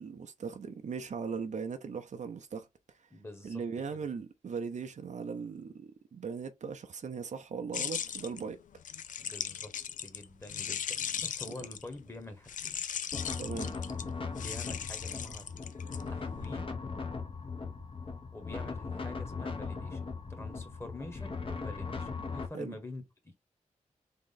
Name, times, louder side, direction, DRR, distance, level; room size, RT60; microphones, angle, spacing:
voice 1, 0.0-2.7 3.4-8.6 13.4-13.7 22.5-22.8, right 5 dB, 65° right, 0.7 m, -39 dB
voice 2, 3.1-4.0 9.2-9.7 10.0-12.8 14.4-15.5 16.1-16.8 18.3-23.3, left 2 dB, 20° left, 1.5 m, -46 dB
sound 1, 7.7-12.0 12.5-16.5, left 8 dB, 75° left, 0.4 m, -38 dB
sound 2, 13.1-22.5, left 4 dB, 40° left, 1.1 m, -38 dB
3.7 x 3.0 x 4.0 m
cardioid pair, 80°, 13 cm